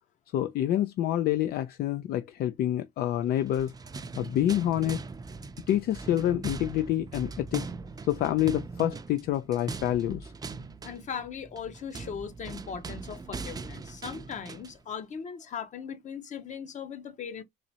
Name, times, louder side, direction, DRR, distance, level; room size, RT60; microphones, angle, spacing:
voice 1, 0.3-3.7 4.2-5.0 5.7-7.7 8.1-10.3, left 12 dB, 65° left, 0.4 m, -27 dB
sound 1, 3.4-14.8, right 4 dB, 20° right, 0.5 m, -40 dB
voice 2, 10.8-17.4, left 7 dB, 45° left, 1.0 m, -39 dB
3.9 x 3.1 x 2.8 m
cardioid pair, 110°, 17 cm